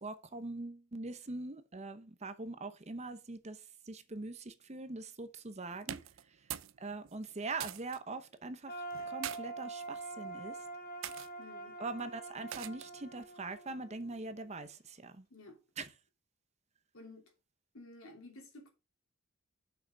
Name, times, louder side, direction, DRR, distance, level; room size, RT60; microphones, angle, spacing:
voice 1, 0.0-6.0 6.8-10.6 11.8-15.3 15.8-15.9, right 3 dB, 30° right, 0.8 m, -42 dB
sound 1, 5.8-6.8 7.0-8.0 8.9-9.4 10.2-10.4 11.0-11.3 12.5-13.0, right 11 dB, 65° right, 0.5 m, -43 dB
sound 2, 8.7-14.6, right 3 dB, 45° left, 2.7 m, -45 dB
voice 2, 11.4-11.8 15.3-15.6 16.9-17.3 17.7-18.7, left 2 dB, 75° left, 3.1 m, -53 dB
6.5 x 5.7 x 5.4 m
head